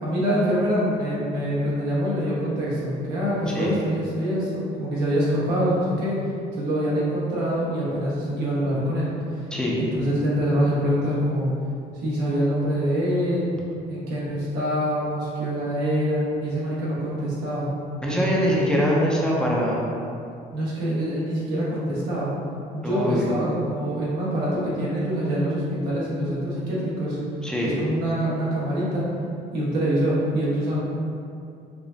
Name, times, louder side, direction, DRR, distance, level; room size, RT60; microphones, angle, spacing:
voice 1, 0.0-6.2 6.5-9.1 9.8-11.5 12.0-13.5 13.9-17.7 18.1-18.6 20.5-22.3 22.7-27.2 27.6-29.0 29.5-30.8, equal, 90° right, -8 dB, 1.2 m, -25 dB
voice 2, 18.0-19.8 22.8-23.3 27.4-27.7, equal, 5° left, -5 dB, 0.6 m, -23 dB
4.9 x 2.2 x 2.6 m, 2.5 s
cardioid pair, 110°, 17 cm